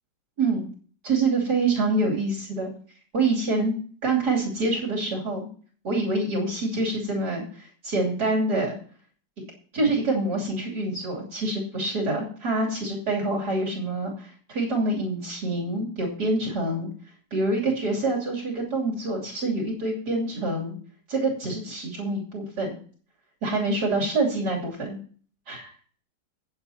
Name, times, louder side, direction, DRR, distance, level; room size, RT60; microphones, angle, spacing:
voice 1, 1.0-2.7 3.1-3.8 4.0-5.5 5.8-8.8 9.4-9.5 9.7-16.9 17.3-20.8 21.1-22.7 23.4-25.0 25.5-25.7, right 2 dB, 70° right, -3 dB, 3.6 m, -26 dB
15.5 x 9.0 x 2.8 m, 0.43 s
omnidirectional pair, 1.8 m